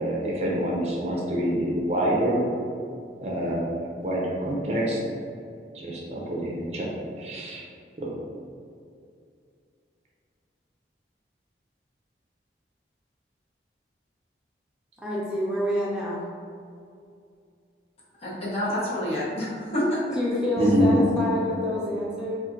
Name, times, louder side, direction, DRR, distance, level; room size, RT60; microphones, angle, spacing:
voice 1, 0.0-2.4 3.2-3.7 4.0-5.0 5.7-6.9 7.2-7.7 8.0-8.2 20.6-21.0, right 1 dB, 35° right, -3 dB, 0.5 m, -26 dB
voice 2, 15.0-16.2 20.2-22.4, left 1 dB, 5° right, -7 dB, 0.8 m, -27 dB
voice 3, 18.2-20.2 20.6-20.8, left 1 dB, 35° left, -7 dB, 1.0 m, -28 dB
4.2 x 2.5 x 3.7 m, 2.4 s
head